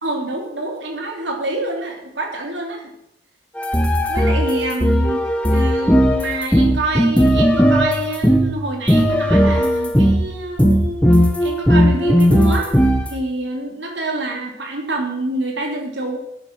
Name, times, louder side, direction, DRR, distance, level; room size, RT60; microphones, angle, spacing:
voice 1, 0.0-2.9 4.1-5.2 5.5-11.1 11.4-12.7 13.1-16.2, right 1 dB, 85° right, 2 dB, 3.4 m, -26 dB
sound 1, 3.6-8.5 8.9-10.3 10.6-13.1, equal, 5° left, 1.2 m, -16 dB
12.0 x 10.5 x 6.2 m, 0.79 s
head